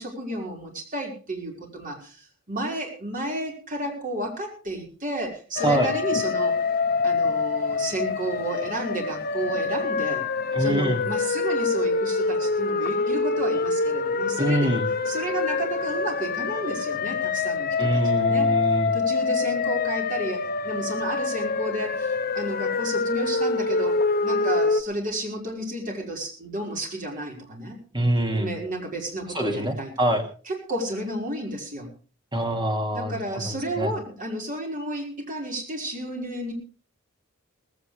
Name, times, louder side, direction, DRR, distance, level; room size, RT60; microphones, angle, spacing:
voice 1, 0.0-6.6 7.0-10.3 10.6-14.7 15.1-18.5 18.9-27.8 28.3-29.9 30.5-31.9 32.9-36.5, right 1 dB, 40° right, 0 dB, 5.2 m, -32 dB
sound 1, 5.6-24.8, left 4 dB, 45° left, 0.9 m, -25 dB
voice 2, 10.5-11.0 14.4-14.9 17.8-18.9 27.9-28.5 29.3-30.2 32.3-33.9, right 1 dB, 20° right, 4 dB, 2.5 m, -24 dB
18.5 x 16.5 x 3.4 m, 0.37 s
head